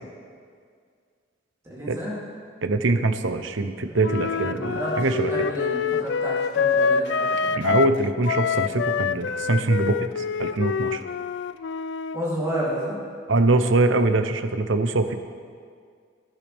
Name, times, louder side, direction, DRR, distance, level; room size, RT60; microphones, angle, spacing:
voice 1, 1.6-2.2 4.4-5.0 5.3-7.6 12.1-13.0, equal, 15° right, -8 dB, 3.1 m, -31 dB
voice 2, 2.6-5.3 7.5-11.0 13.3-15.2, right 2 dB, 75° right, 8 dB, 0.8 m, -23 dB
Wind instrument woodwind instrument, 4.0-8.0 8.2-12.2, left 6 dB, 65° left, 0.3 m, -26 dB
22.5 x 9.9 x 3.5 m, 2.1 s
head